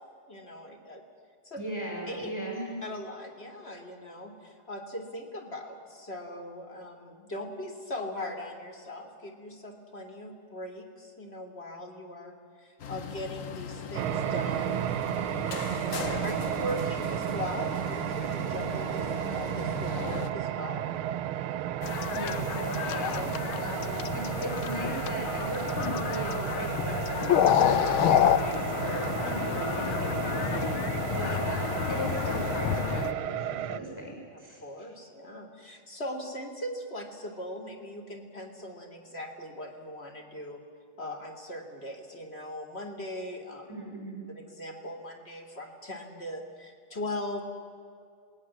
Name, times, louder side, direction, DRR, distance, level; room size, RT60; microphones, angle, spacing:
voice 1, 0.3-1.0 1.4-1.6 2.1-2.3 2.8-12.3 12.6-14.8 15.4-20.9 23.1-23.6 29.1-29.3 31.0-31.1 34.3-40.6 41.0-43.7 44.3-47.4, left 1 dB, 30° left, 2 dB, 3.3 m, -40 dB
voice 2, 1.6-2.8 22.1-34.6 43.7-44.2, equal, 5° left, 0 dB, 6.2 m, -38 dB
sound 1, 12.8-20.3, left 6 dB, 55° left, 0.9 m, -39 dB
sound 2, 13.9-33.8, right 11 dB, 75° right, 1.5 m, -33 dB
sound 3, 21.8-33.1, left 10 dB, 75° left, 1.6 m, -29 dB
27.0 x 20.0 x 7.4 m, 2.4 s
omnidirectional pair, 2.4 m